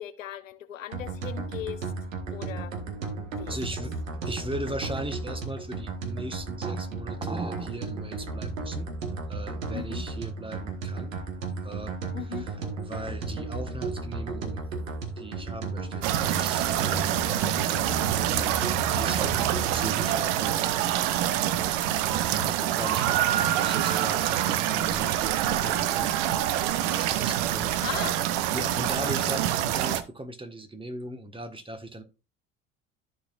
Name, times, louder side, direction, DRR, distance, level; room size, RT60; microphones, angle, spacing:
voice 1, 0.0-1.8 2.3-2.7 3.3-3.6 9.7-10.0 12.1-12.5 27.8-28.1 29.0-29.3, left 10 dB, 90° left, 0.7 m, -37 dB
sound 1, 0.9-20.1, right 3 dB, 85° right, 1.5 m, -34 dB
voice 2, 3.4-8.9 9.3-11.1 11.6-14.6 15.2-17.6 18.3-20.7 22.1-26.1 26.6-27.9 28.5-32.0, right 1 dB, 15° right, 1.4 m, -38 dB
sound 2, 16.0-30.0, right 12 dB, 65° right, 0.8 m, -26 dB
14.0 x 4.8 x 2.5 m
hypercardioid pair, 65°, 38 cm